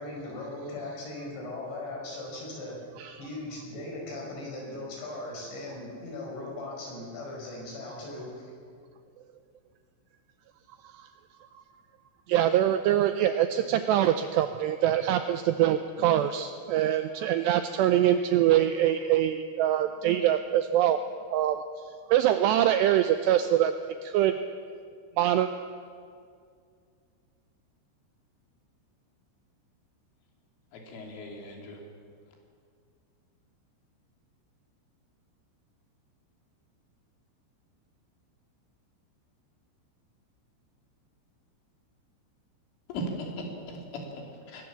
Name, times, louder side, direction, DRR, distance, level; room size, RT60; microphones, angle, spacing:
voice 1, 0.0-2.8 3.2-8.5, left 2 dB, 65° left, -1 dB, 7.7 m, -38 dB
voice 2, 12.3-21.0 21.3-21.6 22.1-23.7 24.0-24.4 25.2-25.5, right 11 dB, 85° right, 9 dB, 2.4 m, -24 dB
voice 3, 30.7-31.8 42.9-44.7, equal, 80° left, 1 dB, 5.4 m, -38 dB
21.5 x 18.5 x 7.3 m, 2.2 s
omnidirectional pair, 5.6 m